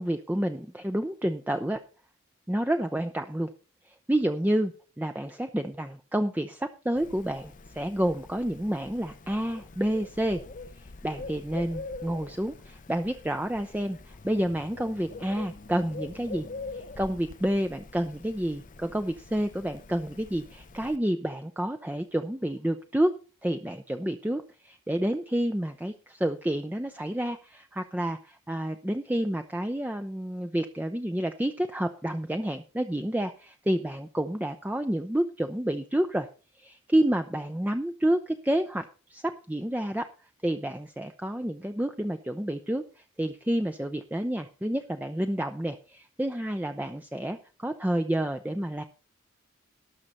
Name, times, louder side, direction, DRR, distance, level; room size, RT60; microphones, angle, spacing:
voice 1, 0.0-1.8 2.5-3.5 3.9-4.7 5.0-10.4 10.8-16.5 16.7-23.1 23.4-36.3 36.6-40.1 40.4-48.8, right 1 dB, 10° right, 7 dB, 0.5 m, -29 dB
Bird, 7.0-21.0, left 3 dB, 40° left, 0.6 m, -44 dB
18.5 x 6.5 x 4.3 m, 0.36 s
head